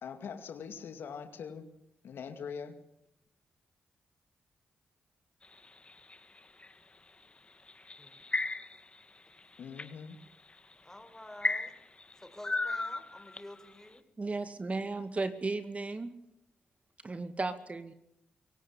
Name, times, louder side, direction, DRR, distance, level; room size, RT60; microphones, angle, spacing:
voice 1, 0.0-1.7 2.0-2.7 9.6-10.2, left 6 dB, 75° left, 8 dB, 2.4 m, -42 dB
sound 1, 5.4-6.7 7.7-9.0 9.4-9.9 10.6-10.7 11.4-13.6, left 3 dB, 30° left, 1.9 m, -34 dB
voice 2, 10.8-11.8 12.2-14.0, left 1 dB, 10° left, 9 dB, 4.8 m, -50 dB
voice 3, 14.2-16.1 17.0-17.9, right 3 dB, 35° right, 10 dB, 2.2 m, -35 dB
24.0 x 18.0 x 8.5 m, 0.77 s
supercardioid pair, 50°, 4 cm